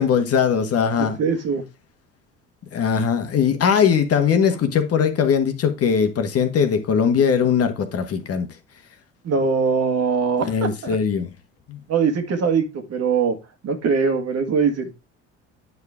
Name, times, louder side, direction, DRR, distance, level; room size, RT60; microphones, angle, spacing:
voice 1, 0.0-1.2 2.7-8.5 10.4-11.3 11.7-11.8, left 7 dB, 45° left, 1.5 m, -20 dB
voice 2, 1.0-1.6 9.2-11.0 11.9-13.4 13.6-14.9, right 5 dB, 45° right, 1.7 m, -22 dB
9.4 x 4.8 x 3.6 m
hypercardioid pair, 65°, 35 cm